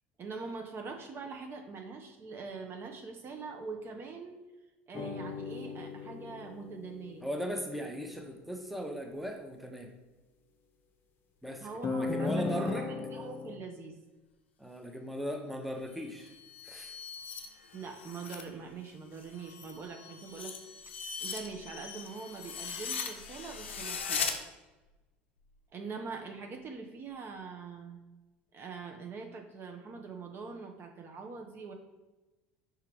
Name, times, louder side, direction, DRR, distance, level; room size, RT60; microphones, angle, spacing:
voice 1, 0.2-4.4 4.9-7.3 11.6-14.0 17.7-20.5 21.2-24.3 25.7-28.0 28.5-31.7, right 4 dB, 40° right, 3 dB, 0.6 m, -43 dB
sound 1, 4.9-7.5 11.8-13.6, left 3 dB, 35° left, 0.6 m, -36 dB
voice 2, 7.2-9.9 11.4-12.9 14.6-16.3 16.6-17.0, equal, ahead, 3 dB, 0.7 m, -38 dB
sound 2, 16.1-18.5 18.8-24.4, left 6 dB, 85° left, 0.4 m, -40 dB
4.7 x 3.4 x 3.3 m, 1.1 s
hypercardioid pair, 70°, 6 cm